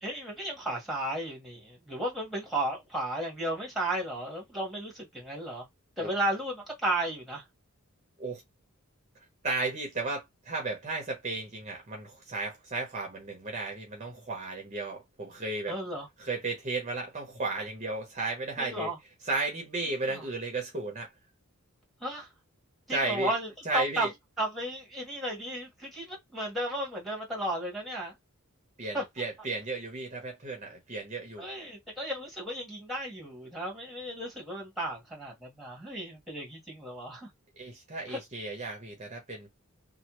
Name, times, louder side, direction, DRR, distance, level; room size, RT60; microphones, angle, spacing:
voice 1, 0.0-5.6 6.0-7.4 15.7-16.1 18.6-19.0 20.1-20.2 22.0-22.3 22.9-24.1 24.4-28.1 28.9-29.0 31.4-37.3 38.1-38.2, right 1 dB, ahead, 1.5 m, -34 dB
voice 2, 9.4-15.8 16.2-18.9 19.3-21.1 22.9-23.3 23.6-24.1 28.8-31.5 37.6-39.5, right 3 dB, 35° right, 0.9 m, -34 dB
3.2 x 2.1 x 3.0 m
head